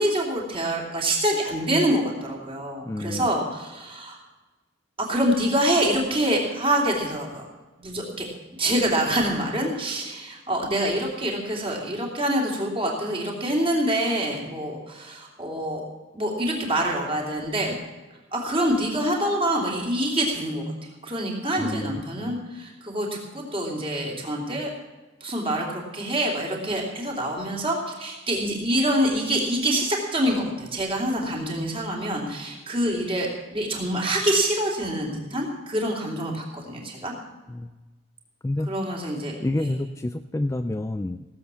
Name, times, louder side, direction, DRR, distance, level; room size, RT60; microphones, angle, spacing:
voice 1, 0.0-4.2 5.0-7.4 7.8-8.3 8.6-15.8 16.1-17.8 18.3-24.7 25.2-37.1 38.7-39.7, right 1 dB, 25° right, -1 dB, 3.1 m, -26 dB
voice 2, 2.8-3.3 21.6-22.4 37.5-37.7 38.4-38.9 39.4-41.3, left 1 dB, 15° left, 9 dB, 0.3 m, -29 dB
17.0 x 7.8 x 7.0 m, 1.2 s
head